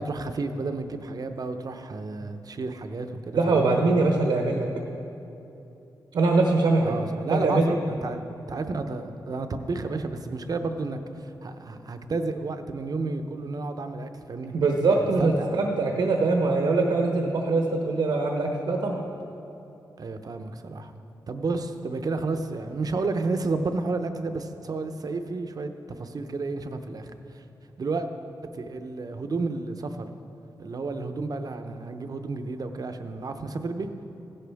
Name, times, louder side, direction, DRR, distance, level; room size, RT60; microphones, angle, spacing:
voice 1, 0.0-3.8 6.8-8.2 8.5-14.5 15.0-15.7 20.0-21.0 21.3-27.1 27.8-28.1 28.5-30.1 30.6-33.9, right 3 dB, 50° right, 8 dB, 0.8 m, -31 dB
voice 2, 3.3-4.7 6.1-6.9 7.3-7.7 14.5-19.0, right 3 dB, 80° right, 2 dB, 1.0 m, -22 dB
15.5 x 11.0 x 3.5 m, 2.9 s
cardioid pair, 70°, 8 cm